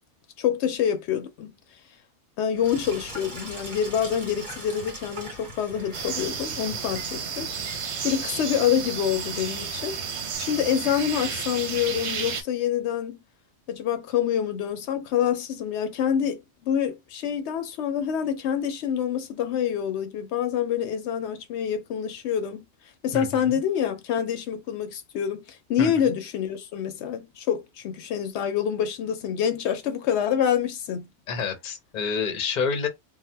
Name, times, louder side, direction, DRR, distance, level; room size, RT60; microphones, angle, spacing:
voice 1, 0.4-1.5 2.4-7.5 8.0-10.0 10.4-13.2 13.7-22.7 23.0-31.1, left 9 dB, 80° left, 0.9 m, -26 dB
Sink (filling or washing), 2.5-10.4, right 1 dB, 45° right, 1.3 m, -42 dB
sound 1, 5.9-12.4, right 6 dB, 80° right, 0.9 m, -32 dB
voice 2, 23.1-23.6 25.8-25.9 31.3-32.9, left 5 dB, 50° left, 0.7 m, -28 dB
2.7 x 2.1 x 3.2 m
omnidirectional pair, 1.1 m